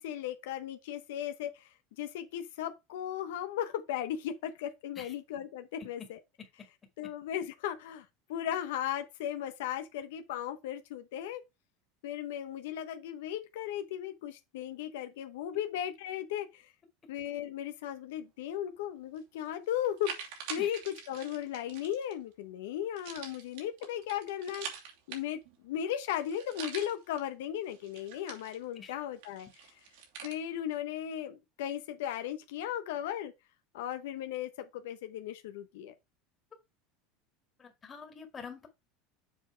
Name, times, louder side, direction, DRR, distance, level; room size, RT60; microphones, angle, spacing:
voice 1, 0.0-1.7 2.0-6.2 7.0-11.4 12.0-16.7 17.1-20.1 20.5-24.7 25.1-29.5 30.2-33.3 33.7-35.9, left 10 dB, 85° left, 0.9 m, -36 dB
sound 1, 19.2-19.3 19.7-22.1 23.0-25.6 25.9-26.0 26.2-27.2 27.6-28.9 29.2-30.4, right 7 dB, 75° right, 2.9 m, -44 dB
voice 2, 37.6-38.7, left 6 dB, 20° left, 2.0 m, -46 dB
7.4 x 4.4 x 4.6 m
supercardioid pair, 150°, 0 cm